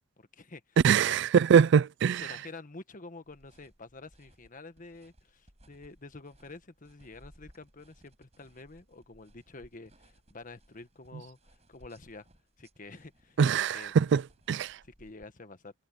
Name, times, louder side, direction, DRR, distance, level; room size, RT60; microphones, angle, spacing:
voice 1, 0.2-0.8 1.1-1.3 2.2-12.3 12.6-13.4 13.7-14.0 14.8-15.7, left 3 dB, 45° left, 1.4 m, -48 dB
voice 2, 0.8-2.3 13.4-14.2 14.5-14.8, right 7 dB, 65° right, 0.3 m, -23 dB
sound 1, 3.2-15.2, right 1 dB, 35° right, 6.2 m, -62 dB
head